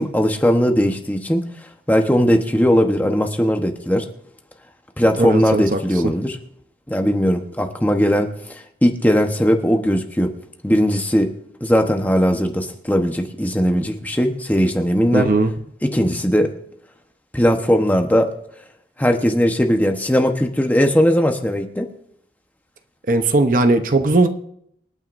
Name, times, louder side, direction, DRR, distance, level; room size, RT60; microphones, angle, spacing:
voice 1, 0.0-1.4 1.9-4.1 5.0-6.4 6.9-10.3 10.6-11.3 11.6-15.3 15.8-16.5 17.3-18.3 19.0-21.9, equal, 10° left, 3 dB, 1.0 m, -18 dB
voice 2, 5.2-5.8 15.1-15.5 23.1-24.3, right 2 dB, 45° right, 7 dB, 0.8 m, -17 dB
27.5 x 9.3 x 2.6 m, 0.72 s
head